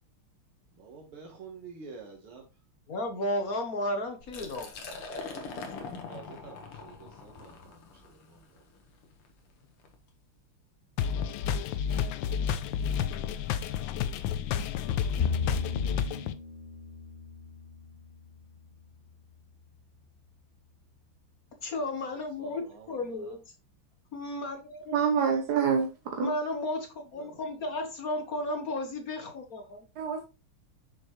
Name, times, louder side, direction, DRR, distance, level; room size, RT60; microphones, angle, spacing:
voice 1, 0.7-2.5 6.0-8.6 22.4-23.4 27.1-27.4, right 5 dB, 75° right, 2.2 m, -49 dB
voice 2, 2.9-5.0 21.6-23.4 24.1-25.0 26.2-29.9, left 1 dB, 50° left, 1.2 m, -34 dB
Liquid, 4.2-10.0, left 4 dB, 90° left, 2.3 m, -43 dB
sound 1, 11.0-16.3, left 8 dB, 70° left, 1.3 m, -30 dB
Bowed string instrument, 15.2-18.7, left 6 dB, 35° left, 2.3 m, -35 dB
voice 3, 24.9-26.3 30.0-30.2, right 6 dB, 55° right, 1.3 m, -27 dB
6.8 x 6.5 x 3.1 m
omnidirectional pair, 2.4 m